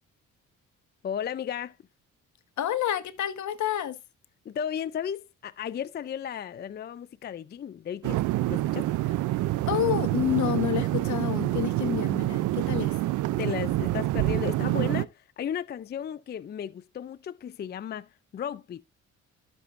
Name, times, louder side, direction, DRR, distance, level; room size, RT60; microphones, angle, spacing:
voice 1, 1.0-1.8 4.5-8.2 8.5-9.0 13.4-18.8, left 9 dB, 35° left, 0.4 m, -34 dB
voice 2, 2.6-4.0 9.7-13.0, left 11 dB, 70° left, 1.3 m, -29 dB
sound 1, 8.0-15.1, right 16 dB, 80° right, 0.5 m, -27 dB
14.5 x 7.0 x 2.5 m
cardioid pair, 90°, 30 cm